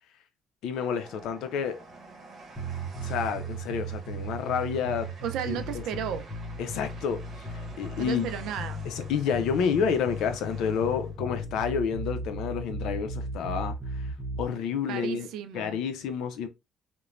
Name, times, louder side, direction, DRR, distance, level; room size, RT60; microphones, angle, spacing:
voice 1, 0.6-1.8 3.0-5.1 5.5-5.8 6.6-7.2 7.5-8.3 8.9-14.1 14.4-15.3 15.5-16.5, left 7 dB, 85° left, 0.5 m, -29 dB
Train, 0.7-11.2, right 3 dB, 45° right, 0.9 m, -50 dB
sound 1, 2.5-14.5, right 1 dB, 5° right, 1.0 m, -36 dB
voice 2, 5.2-6.3 8.0-8.8 14.9-15.8, right 9 dB, 85° right, 0.4 m, -34 dB
3.0 x 2.1 x 2.4 m
cardioid pair, 135°, 0 cm